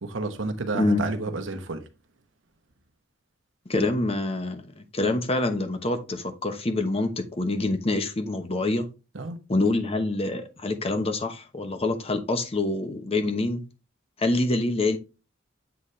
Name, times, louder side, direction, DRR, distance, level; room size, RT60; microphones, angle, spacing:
voice 1, 0.0-1.8 9.1-9.4, right 3 dB, 70° right, 1.0 m, -30 dB
voice 2, 3.7-8.9 9.5-13.6 14.2-15.0, left 2 dB, 30° left, 0.9 m, -26 dB
7.9 x 4.1 x 3.2 m
head